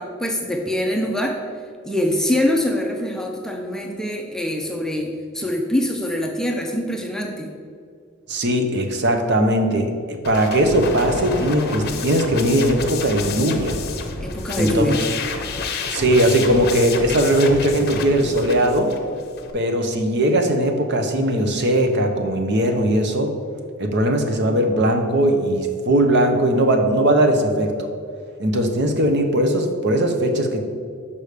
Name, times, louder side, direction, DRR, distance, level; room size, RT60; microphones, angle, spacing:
voice 1, 0.0-1.4 1.8-7.5 14.2-15.0, left 1 dB, 5° left, 1 dB, 0.5 m, -24 dB
voice 2, 8.3-13.8 14.6-14.9 15.9-18.9 19.5-23.3 23.8-27.7 28.4-30.6, right 1 dB, 55° right, 5 dB, 0.8 m, -19 dB
sound 1, 10.2-19.5, left 4 dB, 50° left, 0.7 m, -29 dB
5.5 x 5.0 x 6.5 m, 2.2 s
head